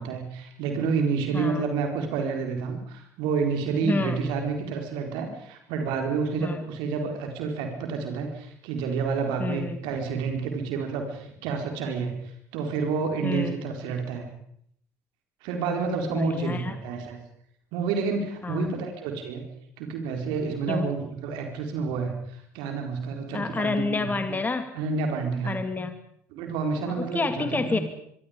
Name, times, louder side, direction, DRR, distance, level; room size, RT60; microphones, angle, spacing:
voice 1, 0.0-12.1 12.5-14.3 15.4-17.2 17.7-19.4 19.8-22.1 22.5-24.1 24.7-25.6 26.3-27.8, right 5 dB, 60° right, 4 dB, 4.3 m, -29 dB
voice 2, 1.3-1.6 3.8-4.2 6.4-6.6 9.4-9.8 13.2-13.5 15.6-15.8 16.1-16.8 18.4-18.7 20.7-20.9 23.3-24.7 25.4-25.9 26.9-27.8, left 4 dB, 20° left, 9 dB, 2.5 m, -29 dB
24.5 x 24.5 x 5.2 m, 0.68 s
figure-of-eight pair, 60°, 9 cm